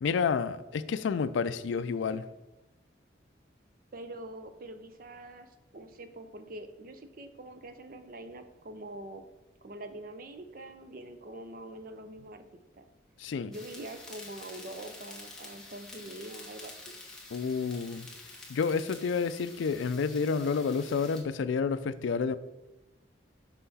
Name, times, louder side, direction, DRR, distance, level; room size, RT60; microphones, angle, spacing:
voice 1, 0.0-2.2 13.2-13.5 17.3-18.1 18.5-22.4, left 5 dB, 80° left, 0.4 m, -29 dB
voice 2, 3.9-9.2 9.6-12.4 12.7-12.9 13.5-17.0, right 1 dB, 45° right, 0.6 m, -44 dB
sound 1, 13.5-21.2, left 2 dB, 5° left, 1.2 m, -48 dB
5.7 x 5.6 x 4.1 m
head